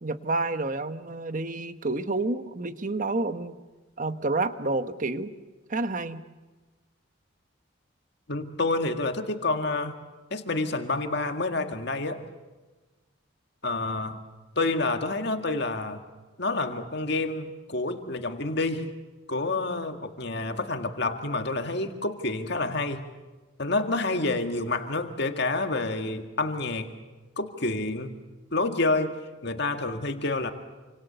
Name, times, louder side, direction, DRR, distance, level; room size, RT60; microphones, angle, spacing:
voice 1, 0.0-3.6 4.0-5.3 5.7-6.2, right 2 dB, 40° right, 10 dB, 1.1 m, -29 dB
voice 2, 8.3-10.0 10.3-12.2 13.6-14.2 14.6-16.0 16.4-18.9 19.3-23.0 23.6-26.9 27.4-28.1 28.5-29.2 29.4-30.5, left 2 dB, 55° left, 6 dB, 2.0 m, -28 dB
28.0 x 26.5 x 6.9 m, 1.2 s
head